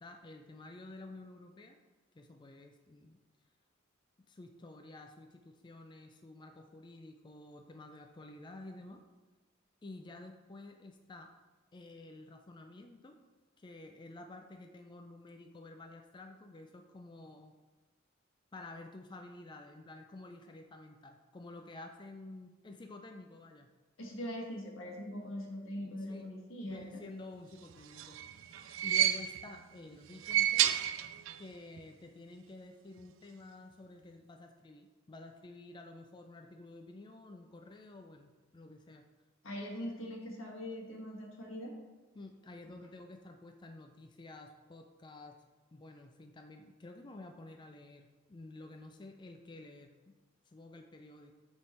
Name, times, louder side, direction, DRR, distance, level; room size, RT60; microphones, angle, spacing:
voice 1, 0.0-1.8 2.1-3.2 4.3-9.0 9.8-11.3 11.7-13.2 13.6-17.5 18.5-23.7 25.3-25.6 26.1-26.3 26.6-30.8 31.4-39.0 42.2-45.3 45.7-50.1 50.5-51.3, left 2 dB, 25° left, 4 dB, 0.4 m, -51 dB
voice 2, 24.0-27.0 39.4-41.7, equal, 90° left, -1 dB, 1.4 m, -42 dB
sound 1, 27.7-29.6 30.1-31.5 31.8-31.9 33.0-33.1, right 11 dB, 75° right, 0.3 m, -31 dB
7.9 x 3.6 x 4.2 m, 1.2 s
head